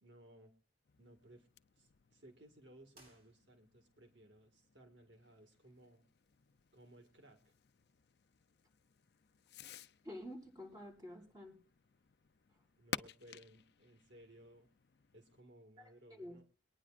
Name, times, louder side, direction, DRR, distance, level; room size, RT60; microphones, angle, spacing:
voice 1, 0.0-0.5 1.0-1.5 1.8-6.1 6.7-7.5 12.8-14.7 15.1-16.4, right 1 dB, 80° right, 4 dB, 1.9 m, -61 dB
Fireworks, 0.8-15.4, left 7 dB, 60° left, 0.5 m, -54 dB
sound 1, 2.9-3.9, right 1 dB, 60° right, 7.7 m, -66 dB
voice 2, 10.0-11.6 16.1-16.4, left 1 dB, 20° right, -2 dB, 5.2 m, -49 dB
23.0 x 9.9 x 2.5 m, 0.38 s
head